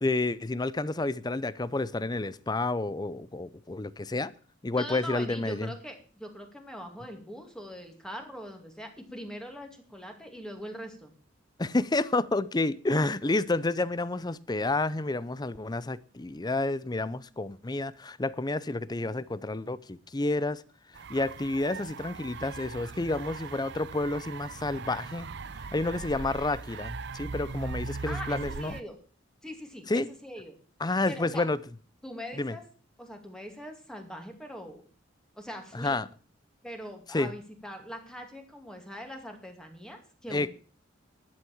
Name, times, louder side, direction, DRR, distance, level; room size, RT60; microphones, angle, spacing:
voice 1, 0.0-4.3 4.6-5.7 11.6-20.6 21.1-25.3 25.7-28.8 29.9-30.1 30.8-31.6 32.3-32.6 35.7-36.1 37.1-37.3 40.3-40.5, left 2 dB, 20° left, 0.6 m, -30 dB
voice 2, 4.7-11.1 28.1-29.0 29.4-30.6 31.1-31.5 32.0-32.6 33.0-34.8 35.3-36.0 36.6-40.5, equal, 5° left, 2.4 m, -42 dB
sound 1, 20.9-28.8, right 4 dB, 60° right, 0.6 m, -40 dB
11.5 x 8.4 x 7.1 m
head